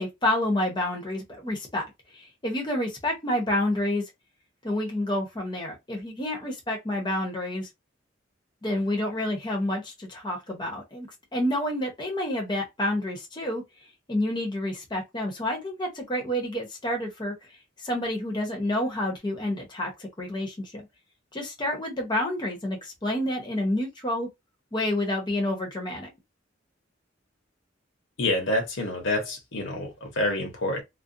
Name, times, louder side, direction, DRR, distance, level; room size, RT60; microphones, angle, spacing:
voice 1, 0.0-1.8 2.1-4.0 4.6-7.7 8.6-13.6 14.1-17.3 17.8-20.9 21.3-24.3 24.7-26.1, left 1 dB, 25° left, 0.7 m, -29 dB
voice 2, 28.2-30.8, left 1 dB, 80° left, 0.9 m, -27 dB
2.4 x 2.2 x 2.6 m
head